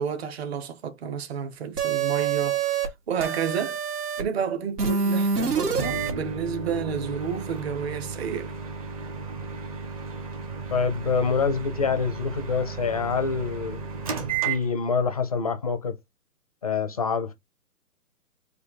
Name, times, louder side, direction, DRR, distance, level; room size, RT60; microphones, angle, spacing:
voice 1, 0.0-3.8 4.2-8.5, right 7 dB, 45° right, 1.2 m, -31 dB
sound 1, 1.8-2.9 3.2-4.2 4.8-6.1, right 6 dB, 85° right, 2.0 m, -26 dB
Microwave oven, 5.8-15.1, right 5 dB, 25° right, 0.6 m, -34 dB
voice 2, 10.7-13.9 14.4-16.0 16.6-17.3, left 5 dB, 25° left, 0.4 m, -26 dB
4.4 x 2.6 x 3.9 m
hypercardioid pair, 150°, 46 cm